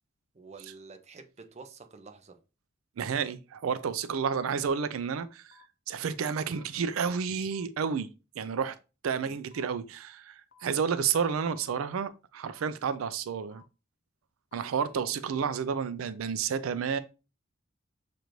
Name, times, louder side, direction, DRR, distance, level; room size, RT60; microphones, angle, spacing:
voice 1, 0.3-2.4 9.1-9.7 14.9-15.1, right 4 dB, 35° right, 0.6 m, -50 dB
voice 2, 3.0-5.6 5.9-8.1 8.4-8.8 9.0-13.6 14.5-17.0, right 6 dB, 90° right, 0.4 m, -30 dB
sound 1, 5.5-5.6 6.5-6.6 7.5-7.6 8.5-8.6 9.5-9.6 10.5-10.6 11.5-11.6 12.5-12.6 13.5-13.6 14.5-14.6, left 7 dB, 55° left, 0.6 m, -58 dB
6.6 x 2.5 x 3.0 m
head